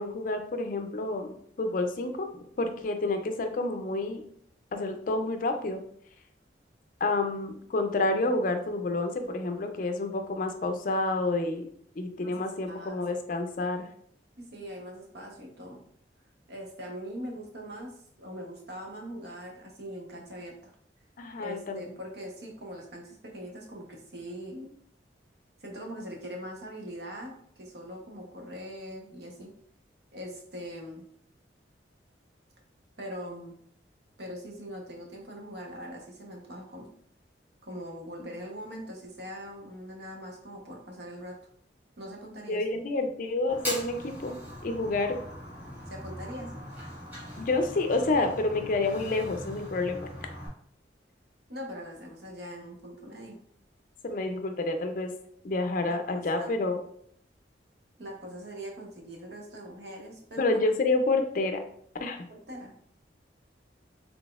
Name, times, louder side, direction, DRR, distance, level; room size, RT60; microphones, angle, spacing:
voice 1, 0.0-2.3 2.6-4.2 4.7-5.8 7.0-11.7 12.0-13.9 21.2-21.8 42.5-44.4 44.6-45.2 47.4-50.1 54.0-55.1 55.4-56.8 60.4-61.6 62.0-62.2, left 2 dB, 50° left, 6 dB, 0.4 m, -29 dB
voice 2, 12.2-13.2 14.4-15.8 16.5-20.7 21.4-24.7 25.6-29.5 30.1-31.0 33.0-33.6 34.2-36.9 37.6-41.4 42.0-42.6 45.9-46.6 51.5-53.4 55.8-56.6 58.0-60.6 62.3-62.7, equal, 65° right, 0 dB, 0.8 m, -42 dB
Fire, 43.5-50.5, equal, 10° right, 1.5 m, -40 dB
4.0 x 3.4 x 2.3 m, 0.65 s
head